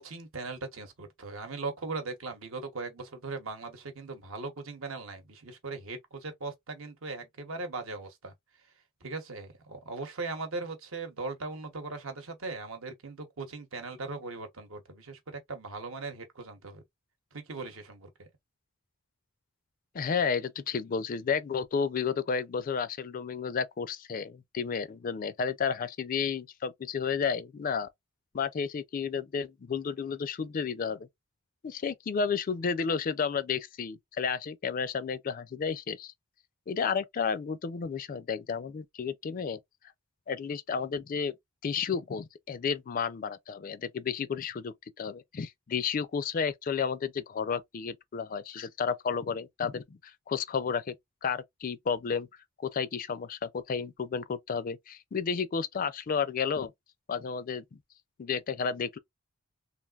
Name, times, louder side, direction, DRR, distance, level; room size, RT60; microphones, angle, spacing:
voice 1, 0.0-8.3 9.0-16.8 17.3-18.3, right 3 dB, 70° right, 1.0 m, -39 dB
voice 2, 19.9-27.9 28.3-31.1 31.6-36.1 36.7-39.6 40.3-41.3 41.6-50.9 51.2-52.3 52.6-56.7 57.1-57.8 58.2-59.0, left 6 dB, 40° left, 0.4 m, -32 dB
3.3 x 2.5 x 2.3 m
head